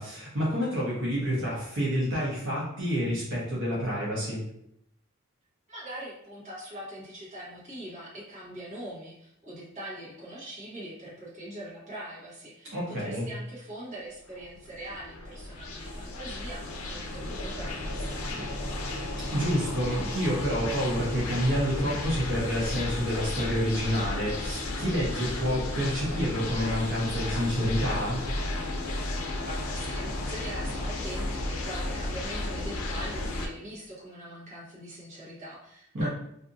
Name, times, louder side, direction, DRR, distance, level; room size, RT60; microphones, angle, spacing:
voice 1, 0.0-4.4 12.7-13.3 19.3-28.2 35.9-36.1, equal, 60° right, -6 dB, 0.9 m, -28 dB
voice 2, 5.7-18.6 29.3-36.1, right 1 dB, 35° right, -7 dB, 1.1 m, -42 dB
sound 1, 14.4-33.5, left 2 dB, 85° left, 0.5 m, -33 dB
2.6 x 2.5 x 2.5 m, 0.76 s
head